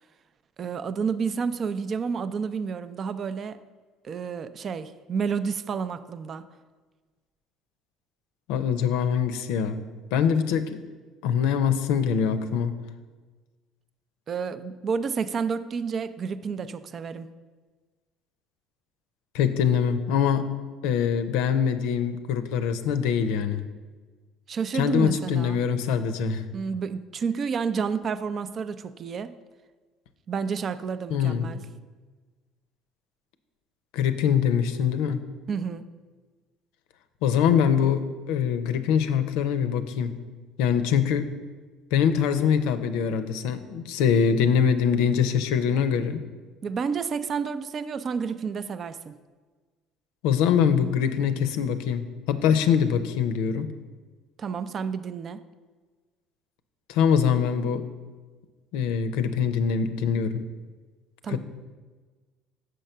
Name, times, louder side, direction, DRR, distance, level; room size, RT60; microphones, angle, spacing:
voice 1, 0.6-3.6 4.0-6.4 14.3-17.3 24.5-25.6 26.5-29.3 30.3-31.6 35.5-35.8 46.6-49.2 54.4-55.4 61.2-61.4, right 6 dB, 45° right, 12 dB, 0.4 m, -30 dB
voice 2, 8.5-9.8 10.1-10.8 11.2-12.8 19.3-20.5 20.8-23.6 24.7-26.4 31.1-31.5 33.9-35.2 37.2-40.2 40.6-41.3 41.9-46.2 50.2-53.7 56.9-57.8 58.7-60.4 61.3-61.4, left 7 dB, 85° left, 10 dB, 0.5 m, -23 dB
6.5 x 4.5 x 6.6 m, 1.4 s
supercardioid pair, 95°, 0 cm